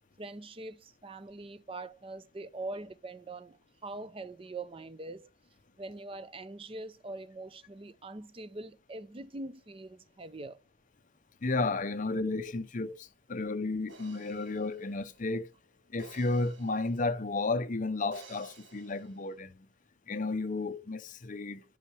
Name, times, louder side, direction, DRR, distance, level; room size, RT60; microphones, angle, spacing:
voice 1, 0.2-5.3 5.8-10.6, right 2 dB, 25° right, 0.5 m, -43 dB
voice 2, 11.4-15.5 15.9-19.7 20.1-21.6, left 3 dB, 40° left, 0.6 m, -33 dB
sound 1, 13.9-17.4 18.1-19.4, right 3 dB, 65° right, 1.5 m, -55 dB
11.5 x 5.5 x 3.2 m
head